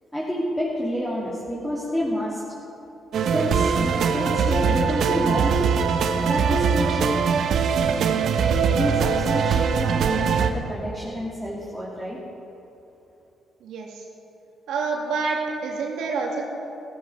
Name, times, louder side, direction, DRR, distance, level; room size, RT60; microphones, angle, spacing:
voice 1, 0.1-2.4 3.3-5.7 6.2-7.2 8.7-12.2, equal, 5° left, -7 dB, 3.0 m, -29 dB
sound 1, 3.1-10.5, right 6 dB, 65° right, 1.1 m, -21 dB
voice 2, 13.6-14.1 14.7-16.4, right 4 dB, 85° right, 0 dB, 2.7 m, -27 dB
14.5 x 14.5 x 5.8 m, 2.8 s
cardioid pair, 90°, 0 cm